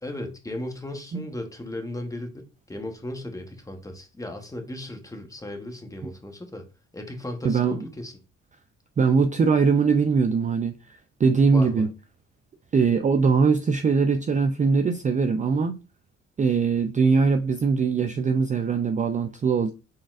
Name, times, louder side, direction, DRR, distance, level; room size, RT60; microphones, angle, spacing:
voice 1, 0.0-2.3 2.7-6.7 6.9-8.1 11.5-11.9, left 1 dB, 10° left, 0.9 m, -36 dB
voice 2, 7.4-7.8 9.0-10.7 11.2-11.9 12.7-15.8 16.4-19.7, right 5 dB, 25° right, 0.4 m, -21 dB
4.0 x 3.8 x 2.4 m
cardioid pair, 90°, 30 cm